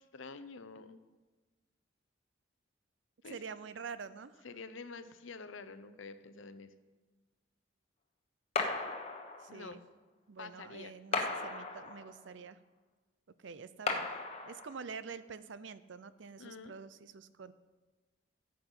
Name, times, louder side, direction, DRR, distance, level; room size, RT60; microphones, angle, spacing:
voice 1, 0.1-1.0 3.2-3.4 4.4-6.7 9.5-9.8 10.4-10.9 16.4-16.8, left 4 dB, 85° left, 11 dB, 0.7 m, -48 dB
voice 2, 3.2-4.4 9.4-9.8 10.3-12.6 13.4-14.1 14.4-17.5, right 5 dB, 70° right, 15 dB, 0.5 m, -47 dB
sound 1, 8.6-9.7 11.1-12.3 13.9-14.9, left 3 dB, 30° left, 1.0 m, -36 dB
13.0 x 7.8 x 5.4 m, 1.2 s
head